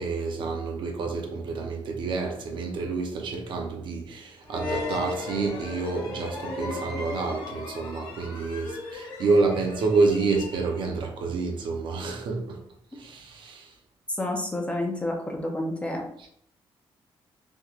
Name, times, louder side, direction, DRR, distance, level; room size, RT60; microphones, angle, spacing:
voice 1, 0.0-12.6 12.9-13.8 16.2-16.3, right 4 dB, 55° right, 0.6 m, -28 dB
sound 1, 4.5-10.9, left 3 dB, 70° left, 1.0 m, -36 dB
voice 2, 14.1-16.0, left 1 dB, 10° left, 0.4 m, -29 dB
3.5 x 3.0 x 2.4 m
cardioid pair, 175°, 10 cm